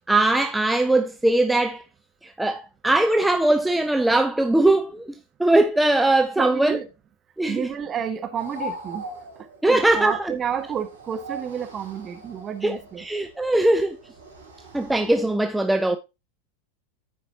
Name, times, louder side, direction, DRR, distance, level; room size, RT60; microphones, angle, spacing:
voice 1, 0.1-1.8 2.2-5.1 5.4-6.8 7.4-7.7 9.6-10.3 12.6-14.0 14.7-16.0, right 2 dB, 5° right, 0.5 m, -20 dB
voice 2, 6.4-6.9 7.5-9.1 9.4-13.1, right 8 dB, 25° right, 1.1 m, -30 dB
sound 1, 8.4-15.3, right 1 dB, 75° right, 2.3 m, -41 dB
14.0 x 4.7 x 2.8 m
figure-of-eight pair, 90°, 0 cm